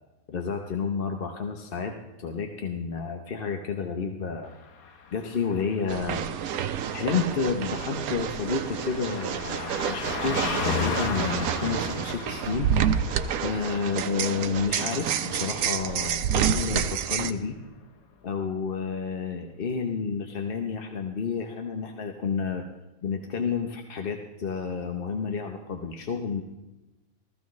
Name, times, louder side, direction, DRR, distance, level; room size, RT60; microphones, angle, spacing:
voice 1, 0.3-4.5 5.1-6.2 6.9-12.7 13.4-17.6 18.2-22.6 23.0-26.4, left 5 dB, 45° left, 4 dB, 0.9 m, -30 dB
Car passing by, 4.5-16.5 16.8-17.0, left 6 dB, 80° left, 1.4 m, -37 dB
sound 1, 5.9-17.3, right 8 dB, 90° right, 1.1 m, -29 dB
15.5 x 14.0 x 3.1 m, 1.0 s
omnidirectional pair, 1.5 m